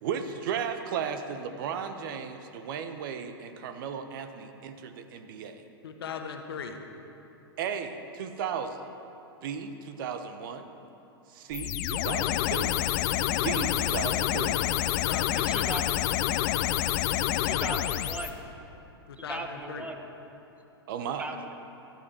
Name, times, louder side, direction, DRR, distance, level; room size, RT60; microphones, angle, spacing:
voice 1, 0.0-5.6 7.6-8.8 9.4-10.7 11.3-12.8 13.3-14.6 20.9-21.3, right 7 dB, 55° right, 8 dB, 1.0 m, -35 dB
voice 2, 5.8-6.8 14.9-15.7 19.1-19.9, left 6 dB, 65° left, 5 dB, 1.3 m, -39 dB
sound 1, 11.5-18.3, left 13 dB, 45° left, 0.5 m, -28 dB
voice 3, 15.3-15.8 17.4-18.4 19.3-20.0 21.2-21.5, right 2 dB, 10° right, 4 dB, 1.2 m, -37 dB
15.0 x 12.0 x 4.4 m, 2.9 s
figure-of-eight pair, 105°, 14 cm